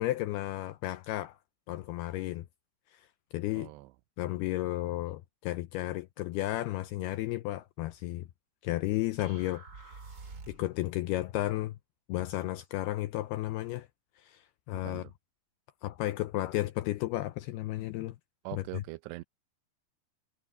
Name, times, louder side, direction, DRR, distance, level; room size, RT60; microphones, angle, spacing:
voice 1, 0.0-1.4 1.7-2.5 2.9-3.0 3.3-3.7 4.2-8.3 8.6-10.0 10.5-11.8 12.1-13.9 14.2-15.0 15.8-18.2 18.5-18.6, left 16 dB, 85° left, 2.3 m, -33 dB
voice 2, 3.5-3.9 14.8-15.1 18.4-19.2, right 19 dB, 80° right, 2.6 m, -42 dB
sound 1, 9.2-10.8, right 4 dB, 30° right, 1.9 m, -48 dB
omnidirectional pair, 5.1 m